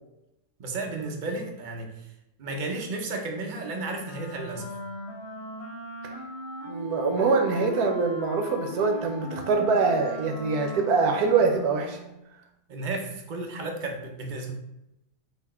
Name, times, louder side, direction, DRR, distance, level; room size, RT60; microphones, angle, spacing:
voice 1, 0.6-2.1 2.4-4.8 12.7-14.5, right 2 dB, 55° right, 2 dB, 0.5 m, -33 dB
Wind instrument woodwind instrument, 4.0-12.2, right 1 dB, 45° left, 1.1 m, -38 dB
voice 2, 6.7-12.0, right 4 dB, 75° right, 4 dB, 1.1 m, -24 dB
4.2 x 2.8 x 4.2 m, 0.89 s
omnidirectional pair, 1.7 m